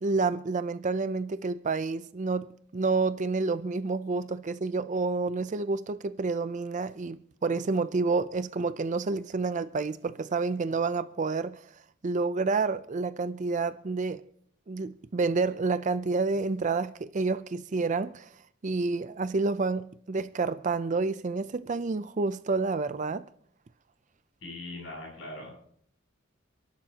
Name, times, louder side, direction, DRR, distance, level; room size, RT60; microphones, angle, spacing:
voice 1, 0.0-11.6 12.0-14.2 14.7-18.3 18.6-23.3, right 3 dB, 40° right, 0.5 m, -29 dB
voice 2, 24.4-25.5, left 2 dB, 75° left, 7.4 m, -40 dB
28.5 x 11.5 x 2.9 m
head